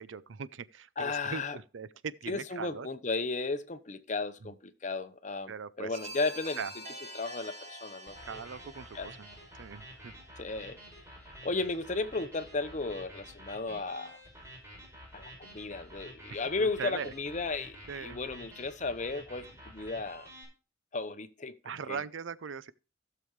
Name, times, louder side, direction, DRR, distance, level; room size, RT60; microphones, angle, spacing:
voice 1, 0.0-2.9 4.4-4.5 5.5-6.0 6.6-6.7 8.3-9.3 9.6-10.1 16.3-17.1 17.9-18.2 21.6-22.7, right 6 dB, 80° right, 0.5 m, -40 dB
voice 2, 1.0-1.6 2.3-6.6 7.1-8.4 8.9-9.1 10.4-10.8 11.4-14.2 15.1-20.3 20.9-21.5 21.9-22.0, left 3 dB, 40° left, 0.8 m, -34 dB
sound 1, 5.9-10.7, right 1 dB, 40° right, 3.1 m, -47 dB
sound 2, 8.1-20.4, equal, 15° right, 5.6 m, -50 dB
15.5 x 6.8 x 3.2 m
head